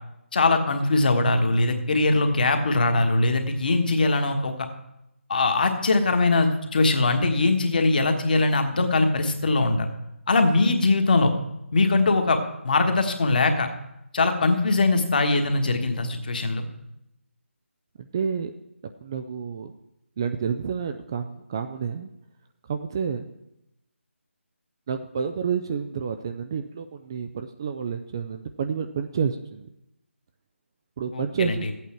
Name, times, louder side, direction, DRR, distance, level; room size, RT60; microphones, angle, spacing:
voice 1, 0.3-4.5 5.3-9.9 10.3-11.3 11.7-12.4 12.6-13.7 14.1-16.6 31.1-31.6, left 3 dB, 40° left, 5 dB, 1.4 m, -21 dB
voice 2, 18.0-18.5 19.0-19.7 20.2-22.1 22.7-23.3 24.9-29.7 31.0-31.7, right 6 dB, 20° right, 7 dB, 0.3 m, -29 dB
14.0 x 8.4 x 4.4 m, 0.86 s
figure-of-eight pair, 155°, 7 cm